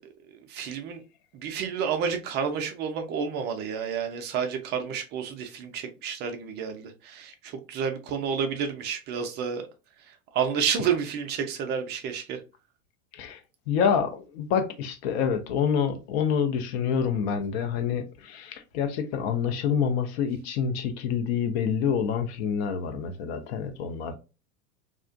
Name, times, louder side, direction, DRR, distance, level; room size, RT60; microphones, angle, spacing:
voice 1, 0.5-1.0 1.3-9.6 10.3-12.4, right 7 dB, 25° right, 0.4 m, -30 dB
voice 2, 13.7-24.2, left 7 dB, 45° left, 0.5 m, -27 dB
2.4 x 2.1 x 2.4 m
hypercardioid pair, 95°, 45 cm